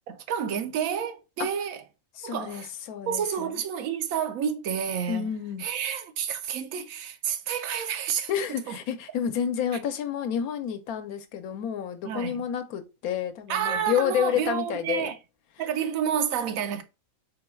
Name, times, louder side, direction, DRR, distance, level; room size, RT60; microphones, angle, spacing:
voice 1, 0.1-1.8 2.2-2.7 3.1-5.3 5.6-8.3 8.7-8.8 12.0-12.4 13.5-15.1 15.6-16.8, right 8 dB, 75° right, 1.1 m, -29 dB
voice 2, 2.1-3.6 5.1-5.6 8.3-15.1, left 9 dB, 90° left, 1.1 m, -30 dB
4.1 x 2.3 x 4.3 m
omnidirectional pair, 1.5 m